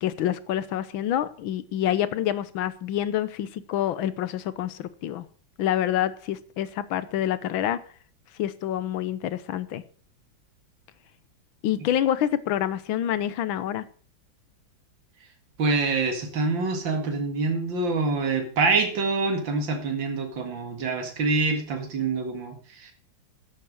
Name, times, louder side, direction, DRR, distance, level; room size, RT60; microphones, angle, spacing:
voice 1, 0.0-5.2 5.6-7.8 8.4-9.8 11.6-13.8, left 11 dB, 85° left, 15 dB, 1.6 m, -27 dB
voice 2, 15.6-22.9, right 3 dB, 70° right, 5 dB, 2.7 m, -26 dB
11.5 x 8.4 x 6.3 m, 0.43 s
omnidirectional pair, 2.2 m